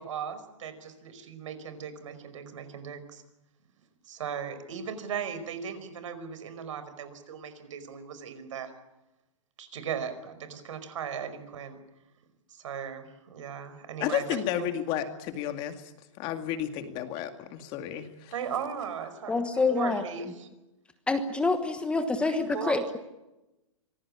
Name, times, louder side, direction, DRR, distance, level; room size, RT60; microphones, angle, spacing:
voice 1, 0.0-3.2 4.0-8.7 9.6-11.8 12.5-14.6 18.3-20.5 22.2-22.9, right 7 dB, 70° right, 11 dB, 5.0 m, -37 dB
voice 2, 14.0-15.9 16.2-18.3, left 10 dB, 30° left, 8 dB, 2.2 m, -32 dB
voice 3, 19.3-20.0 21.1-22.3 22.7-23.0, left 3 dB, 5° left, 8 dB, 1.3 m, -26 dB
26.0 x 20.0 x 8.6 m, 0.98 s
hypercardioid pair, 155°, 17 cm